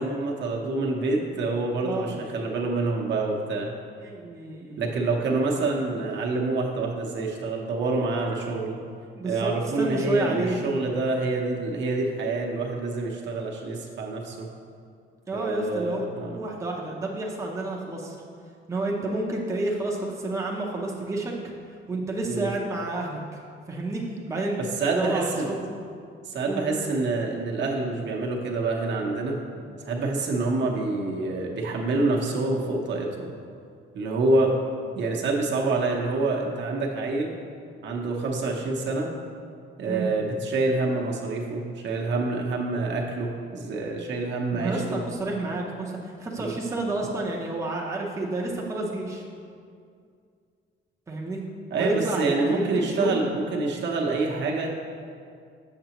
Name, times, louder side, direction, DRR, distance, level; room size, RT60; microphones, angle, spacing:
voice 1, 0.0-3.7 4.8-8.8 9.2-14.5 15.3-16.4 22.3-22.5 24.8-25.5 26.3-29.4 29.8-33.3 33.9-34.5 34.9-37.3 37.8-39.1 39.8-45.0 46.4-46.6 51.7-54.8, right 3 dB, 60° right, -1 dB, 0.8 m, -27 dB
voice 2, 1.8-2.2 4.0-4.8 9.1-10.6 15.3-16.0 16.3-18.1 18.7-21.4 21.9-23.4 23.7-24.6 24.9-25.7 26.5-26.6 39.8-40.1 44.5-49.2 51.1-51.4 51.7-53.3, right 2 dB, 15° right, -2 dB, 0.6 m, -30 dB
6.7 x 6.7 x 2.9 m, 2.3 s
cardioid pair, 150°, 21 cm